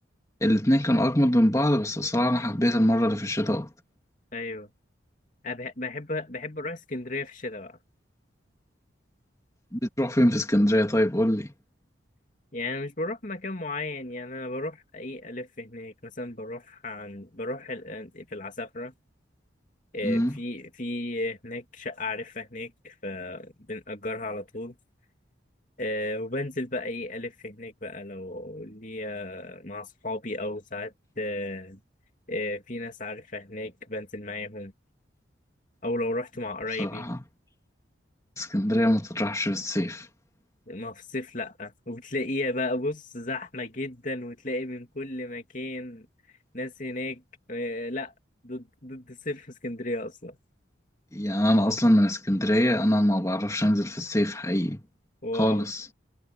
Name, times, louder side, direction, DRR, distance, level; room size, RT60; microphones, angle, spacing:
voice 1, 0.4-3.7 9.7-11.5 20.0-20.3 36.8-37.2 38.4-40.1 51.1-54.8 55.3-55.9, equal, 15° left, 2.8 m, -23 dB
voice 2, 4.3-4.7 5.4-7.8 12.5-18.9 19.9-24.7 25.8-31.8 32.3-34.7 35.8-37.1 40.7-46.1 46.5-47.2 47.5-48.1 48.4-50.4 55.2-55.7, left 2 dB, 40° left, 3.0 m, -34 dB
head